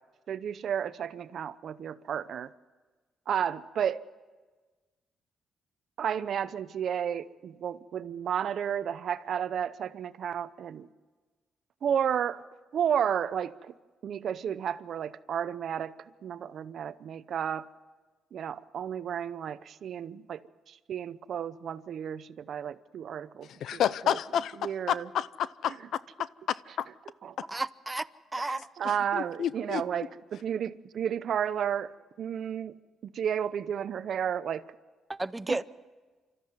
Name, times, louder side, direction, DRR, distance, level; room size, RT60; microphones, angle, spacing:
voice 1, 0.3-2.5 3.3-4.1 6.0-10.9 11.8-12.4 12.7-13.7 14.0-15.9 16.2-17.7 18.3-20.4 20.7-24.2 24.6-25.1 27.2-27.4 28.4-32.8 33.0-34.7 35.5-35.6, right 8 dB, 60° right, 0.7 m, -32 dB
voice 2, 23.6-24.6 24.9-25.7 26.2-26.9 29.1-29.8, left 9 dB, 70° left, 0.6 m, -30 dB
voice 3, 27.5-28.1 28.3-28.7 35.1-35.6, right 2 dB, 15° right, 0.7 m, -32 dB
26.5 x 13.5 x 9.4 m
cardioid pair, 90°, 0 cm